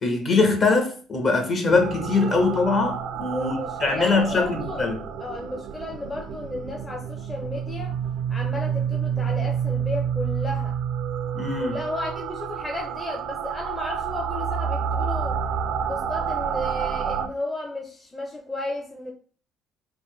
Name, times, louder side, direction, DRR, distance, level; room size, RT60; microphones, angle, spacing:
voice 1, 0.0-5.0 11.3-11.8, left 3 dB, 45° left, 1.3 m, -22 dB
sound 1, 1.7-17.3, right 8 dB, 75° right, 0.4 m, -29 dB
voice 2, 3.3-4.8 5.2-8.0 8.3-10.8 11.6-15.4 15.8-19.1, left 2 dB, 20° left, 0.8 m, -33 dB
4.1 x 2.2 x 3.3 m
cardioid pair, 90°, 0 cm